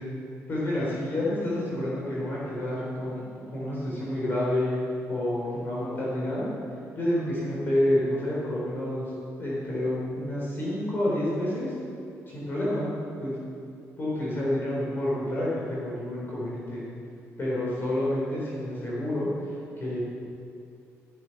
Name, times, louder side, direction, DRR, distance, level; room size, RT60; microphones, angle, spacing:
voice 1, 0.5-3.2 3.5-4.8 5.1-6.5 7.0-9.1 9.4-11.7 12.3-12.9 13.2-13.4 14.0-16.9 17.4-19.3 19.8-20.0, left 1 dB, 35° left, -6 dB, 3.9 m, -28 dB
13.0 x 11.0 x 6.0 m, 2.5 s
cardioid pair, 135°, 6 cm